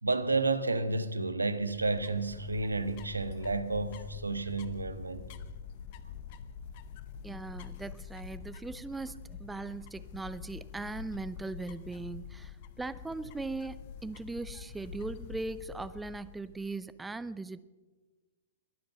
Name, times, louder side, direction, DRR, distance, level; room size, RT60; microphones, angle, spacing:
voice 1, 0.0-5.3, right 3 dB, 85° right, 1.0 m, -31 dB
sound 1, 1.5-16.7, left 7 dB, 45° left, 0.8 m, -46 dB
voice 2, 7.2-17.6, right 3 dB, 10° right, 0.5 m, -39 dB
22.0 x 7.8 x 6.8 m
figure-of-eight pair, 110°, 0 cm